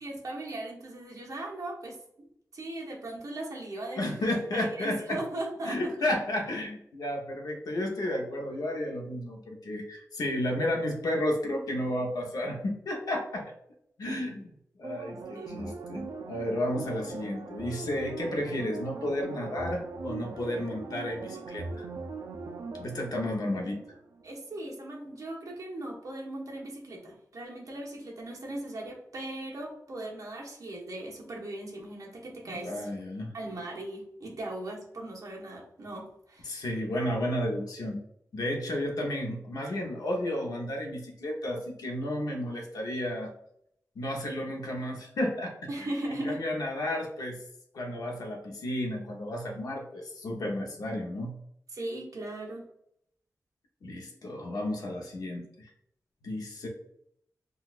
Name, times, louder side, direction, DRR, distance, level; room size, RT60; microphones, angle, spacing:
voice 1, 0.0-2.3 2.5-5.9 15.3-15.6 24.2-32.9 33.3-36.5 45.7-46.4 51.7-52.7, right 1 dB, 65° right, -2 dB, 0.9 m, -38 dB
voice 2, 4.0-5.2 5.6-13.5 14.0-14.5 14.8-21.9 22.8-23.8 32.5-33.3 36.4-38.0 38.3-43.3 44.0-45.6 46.1-47.4 47.7-51.4 53.8-55.4 56.2-56.7, left 1 dB, 80° left, 1 dB, 0.7 m, -32 dB
sound 1, 14.8-24.2 24.6-24.7, right 4 dB, 85° right, 0.4 m, -40 dB
3.8 x 2.3 x 2.4 m, 0.73 s
wide cardioid pair, 150°, 6 cm